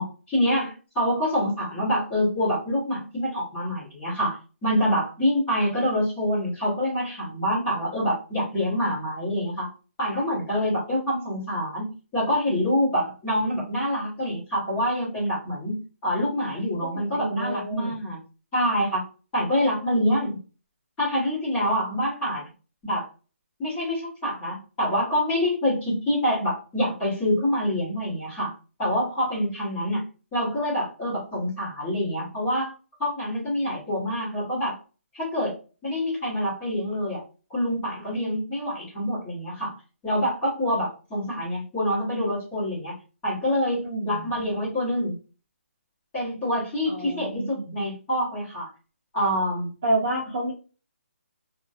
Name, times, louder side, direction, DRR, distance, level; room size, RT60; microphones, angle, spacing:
voice 1, 0.0-9.7 10.0-15.8 16.0-18.2 18.5-19.0 19.3-20.4 21.0-22.5 22.8-23.0 23.6-28.5 28.8-30.0 30.3-32.7 33.0-34.8 35.1-35.5 35.8-37.2 37.5-39.7 40.0-42.9 43.2-45.1 46.1-48.7 49.1-49.7, equal, 10° left, -10 dB, 1.0 m, -26 dB
voice 2, 16.9-18.0 43.8-44.3 46.9-47.8 49.8-50.5, right 1 dB, 20° right, -6 dB, 0.4 m, -29 dB
2.5 x 2.3 x 2.3 m, 0.34 s
hypercardioid pair, 180°, 7 cm